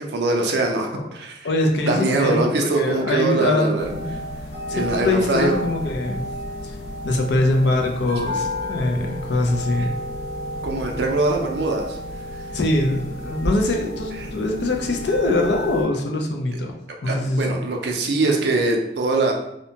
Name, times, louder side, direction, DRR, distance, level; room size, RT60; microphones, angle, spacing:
voice 1, 0.0-1.5 1.9-3.9 4.7-5.6 9.8-9.9 10.6-12.0 14.2-14.3 17.1-19.3, right 2 dB, 65° right, 1 dB, 0.4 m, -22 dB
voice 2, 1.4-4.1 4.7-6.2 6.6-6.8 7.0-9.9 12.5-16.8 17.0-17.6, left 2 dB, 70° left, 2 dB, 0.5 m, -23 dB
sound 1, 3.8-15.8, left 1 dB, 55° left, 0.9 m, -32 dB
2.7 x 2.1 x 2.7 m, 0.84 s
head